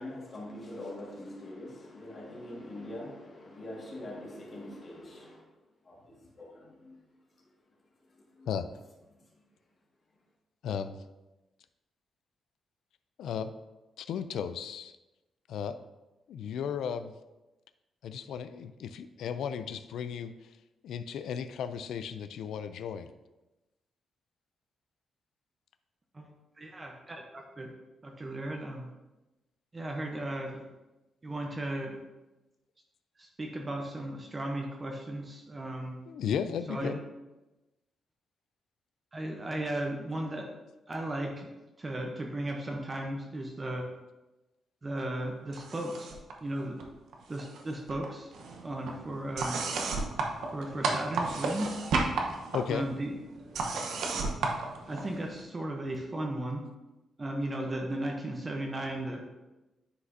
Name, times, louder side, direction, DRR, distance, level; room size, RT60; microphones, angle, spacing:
voice 1, 0.0-5.5 5.8-7.0 7.4-7.5 8.1-8.5 9.2-9.4, left 1 dB, 35° left, 1.7 m, -44 dB
voice 2, 10.6-11.0 13.2-13.5 14.0-15.0 15.5-15.8 16.3-17.1 18.0-20.5 20.8-23.1 36.1-37.0 52.5-52.9, left 7 dB, 85° left, 0.3 m, -35 dB
voice 3, 26.1-27.7 28.0-28.9 29.7-30.7 31.2-32.0 33.2-35.9 36.7-37.0 39.1-40.5 40.9-41.5 41.8-43.9 44.8-46.1 46.4-46.8 47.3-48.3 48.6-49.6 50.5-51.9 52.7-53.1 54.9-56.6 57.2-59.2, right 1 dB, 20° right, 0.7 m, -35 dB
sound 1, 45.5-46.3 46.6-47.6 47.9-55.4, right 3 dB, 80° right, 0.9 m, -34 dB
9.6 x 5.0 x 2.6 m
cardioid pair, 145°, 0 cm